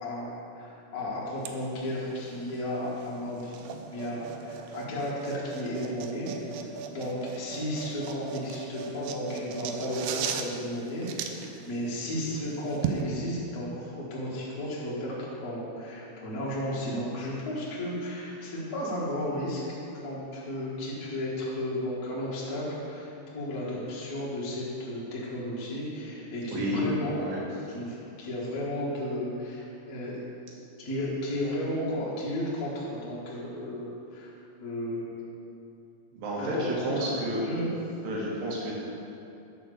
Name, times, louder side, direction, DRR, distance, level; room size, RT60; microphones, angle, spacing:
voice 1, 0.0-3.6 3.9-6.6 6.9-30.2 30.8-34.3 34.6-35.1 36.4-37.1 37.4-37.7, left 1 dB, 90° left, -7 dB, 0.8 m, -34 dB
sound 1, 1.4-13.0, right 7 dB, 90° right, 2.8 m, -38 dB
voice 2, 26.5-26.9 27.2-27.4 36.1-37.5 38.0-38.7, equal, 60° right, -4 dB, 3.0 m, -30 dB
10.0 x 4.4 x 6.7 m, 2.7 s
omnidirectional pair, 5.0 m